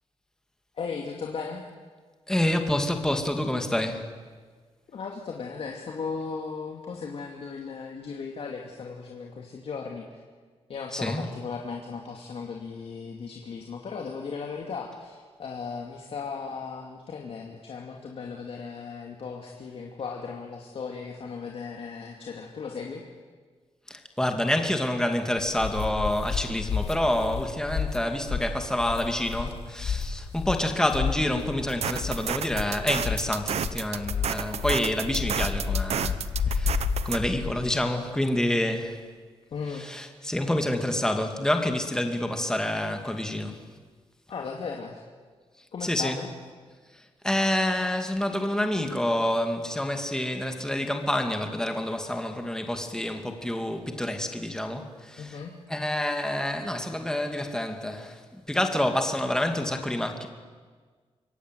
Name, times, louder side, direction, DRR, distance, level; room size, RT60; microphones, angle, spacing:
voice 1, 0.7-1.6 4.9-10.2 10.7-23.0 39.5-39.9 44.3-45.0 45.7-46.3 55.2-55.5, left 5 dB, 65° left, 2.5 m, -36 dB
voice 2, 2.3-4.1 10.9-11.3 23.9-39.0 39.7-43.6 45.8-46.2 46.9-55.4 55.7-60.3, left 1 dB, 5° left, 2.5 m, -28 dB
sound 1, 25.4-37.7, left 6 dB, 80° left, 2.2 m, -31 dB
sound 2, 31.7-37.2, right 8 dB, 80° right, 1.0 m, -31 dB
25.0 x 23.0 x 9.4 m
wide cardioid pair, 135°, 11 cm